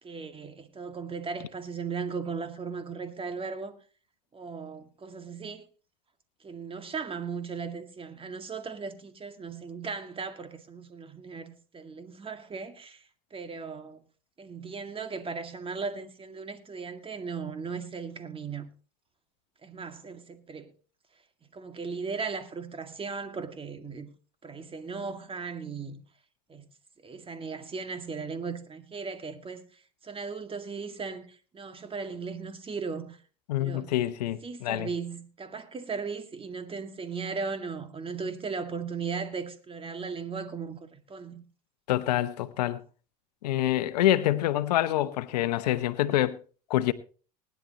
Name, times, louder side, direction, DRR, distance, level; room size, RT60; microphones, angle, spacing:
voice 1, 0.0-3.8 4.3-5.7 6.4-13.0 13.3-14.0 14.4-18.7 19.6-20.7 21.5-24.1 24.4-26.0 26.5-26.7 27.0-29.6 30.0-33.2 33.6-33.9 34.4-41.4, right 5 dB, 25° right, 2.1 m, -37 dB
voice 2, 33.5-34.9 41.9-42.8 43.4-46.4 46.7-46.9, left 13 dB, 90° left, 0.9 m, -26 dB
20.0 x 10.5 x 3.0 m
hypercardioid pair, 80°, 20 cm